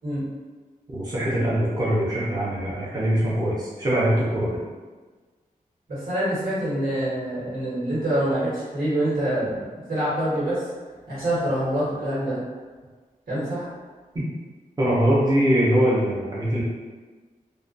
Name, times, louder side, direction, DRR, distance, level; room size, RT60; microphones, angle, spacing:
voice 1, 0.9-4.6 14.1-14.2 14.8-16.6, equal, 25° right, -7 dB, 0.5 m, -22 dB
voice 2, 5.9-9.6 9.9-10.6 11.1-12.4 13.3-13.7, right 1 dB, 90° right, -10 dB, 1.3 m, -25 dB
2.4 x 2.2 x 2.4 m, 1.4 s
wide cardioid pair, 150°, 15 cm